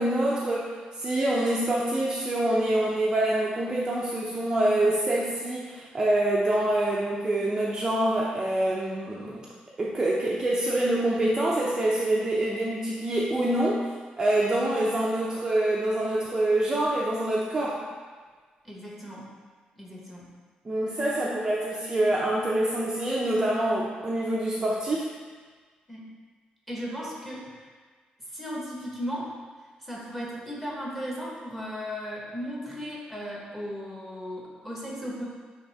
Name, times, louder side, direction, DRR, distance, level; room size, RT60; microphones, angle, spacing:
voice 1, 0.0-9.4 9.8-13.8 14.2-17.8 20.6-25.1, right 1 dB, 20° right, -5 dB, 0.6 m, -26 dB
voice 2, 18.6-19.3 19.8-20.2 21.2-21.4 25.9-26.1 26.7-27.5 28.3-29.3 29.8-35.2, equal, 5° left, -4 dB, 1.3 m, -36 dB
9.7 x 3.5 x 3.5 m, 1.5 s
wide cardioid pair, 175°, 3 cm